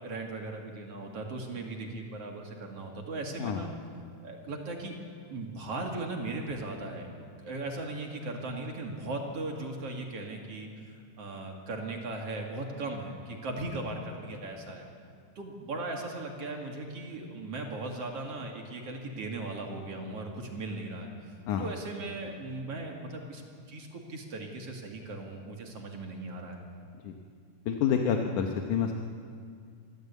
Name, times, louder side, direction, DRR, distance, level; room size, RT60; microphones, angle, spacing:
voice 1, 0.0-3.7 4.2-4.9 5.3-7.1 7.4-10.7 11.2-14.8 15.4-23.4 23.7-26.6, right 2 dB, 50° right, 1 dB, 2.9 m, -38 dB
voice 2, 27.7-28.9, left 7 dB, 80° left, 3 dB, 2.5 m, -28 dB
23.5 x 15.0 x 8.3 m, 2.2 s
omnidirectional pair, 3.6 m